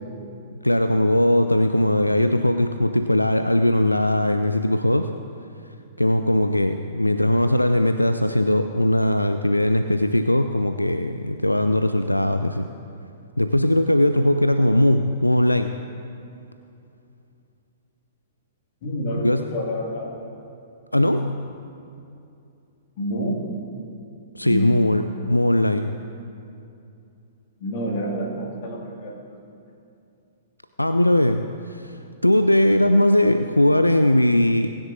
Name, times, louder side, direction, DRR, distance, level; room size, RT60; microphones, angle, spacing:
voice 1, 0.6-5.2 6.0-12.7 13.4-15.8 19.2-19.5 20.9-21.5 24.3-26.0 30.8-32.0 32.2-34.7, left 1 dB, 85° left, 8 dB, 0.4 m, -20 dB
voice 2, 18.8-20.1 23.0-23.4 24.4-24.7 27.6-29.4, equal, 45° left, -1 dB, 2.3 m, -28 dB
21.5 x 10.5 x 2.7 m, 2.6 s
figure-of-eight pair, 110°, 0 cm